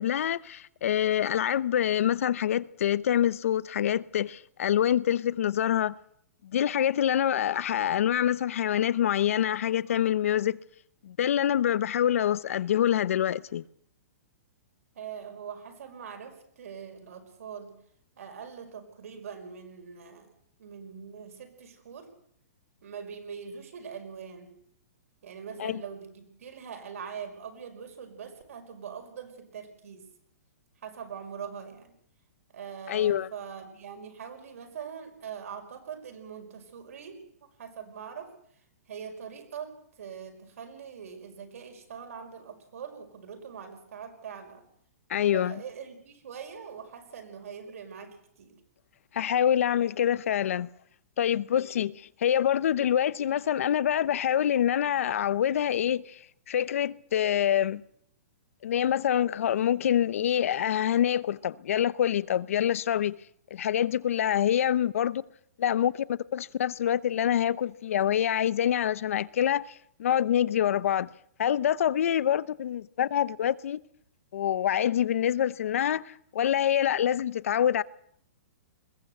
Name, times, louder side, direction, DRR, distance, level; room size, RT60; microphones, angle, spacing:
voice 1, 0.0-6.0 6.4-10.6 11.0-13.6 25.6-25.8 32.9-33.3 45.1-45.5 49.1-50.7 51.2-56.2 56.5-57.8 58.6-63.2 63.5-65.2 65.6-69.7 70.0-71.1 71.4-73.8 74.3-77.8, left 10 dB, 60° left, 0.8 m, -26 dB
voice 2, 15.0-17.8 18.2-20.3 20.6-22.1 22.8-24.5 25.2-30.1 30.8-31.9 32.5-38.3 38.9-44.6 45.3-48.6, right 7 dB, 65° right, 5.4 m, -42 dB
21.5 x 17.5 x 7.9 m
hypercardioid pair, 165°, 8 cm